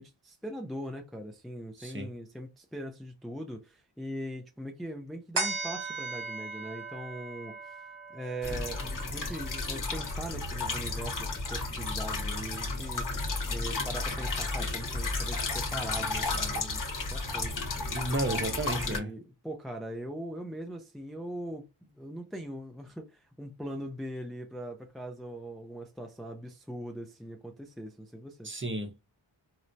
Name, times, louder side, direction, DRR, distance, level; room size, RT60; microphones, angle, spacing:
voice 1, 0.0-7.8 8.1-13.1 13.5-28.5, right 1 dB, ahead, 0.3 m, -41 dB
sound 1, 5.3-12.1 12.6-12.7, right 3 dB, 75° right, 1.2 m, -39 dB
sound 2, 8.4-19.0, left 3 dB, 40° left, 0.9 m, -33 dB
voice 2, 17.9-19.1 28.4-29.0, right 1 dB, 25° right, 0.7 m, -32 dB
4.4 x 2.0 x 2.6 m
wide cardioid pair, 95°, 49 cm